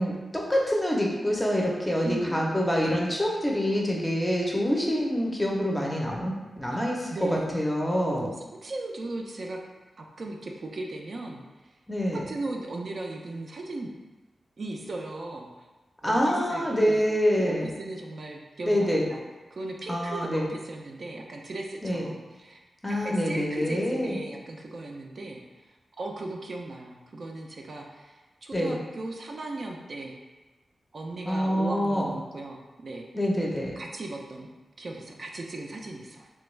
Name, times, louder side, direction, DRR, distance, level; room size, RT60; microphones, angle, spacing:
voice 1, 0.0-8.3 11.9-12.2 16.0-17.7 18.7-19.0 19.9-20.4 21.8-22.1 22.8-24.2 28.5-28.8 31.3-32.1 33.1-33.7, equal, 10° left, -2 dB, 0.5 m, -26 dB
voice 2, 2.0-2.5 6.7-6.8 7.1-7.6 8.2-8.3 8.6-9.6 10.0-11.7 12.1-13.9 14.6-15.5 16.0-17.0 17.4-19.2 19.5-22.6 22.9-25.4 26.0-30.2 30.9-33.1 33.8-34.5 34.8-36.3, right 2 dB, 55° right, 0 dB, 0.3 m, -37 dB
3.2 x 2.2 x 3.1 m, 1.2 s
wide cardioid pair, 105°, 0 cm